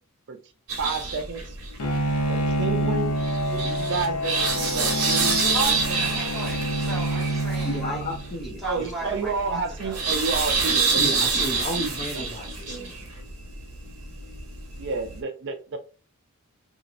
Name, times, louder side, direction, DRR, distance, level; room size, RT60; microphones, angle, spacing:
sound 1, 0.7-15.2, right 4 dB, 70° right, 1.0 m, -28 dB
voice 1, 0.8-1.5 2.3-3.1 3.5-5.8 8.6-11.2 11.5-11.6 12.1-12.9 14.8-15.8, right 4 dB, 55° right, 0.5 m, -31 dB
Bowed string instrument, 1.8-8.5, equal, 85° left, 0.7 m, -27 dB
voice 2, 5.4-8.0 8.4-10.0, right 2 dB, ahead, 1.3 m, -35 dB
voice 3, 7.6-9.2 11.0-13.1, equal, 35° left, 0.6 m, -33 dB
2.9 x 2.8 x 2.5 m
head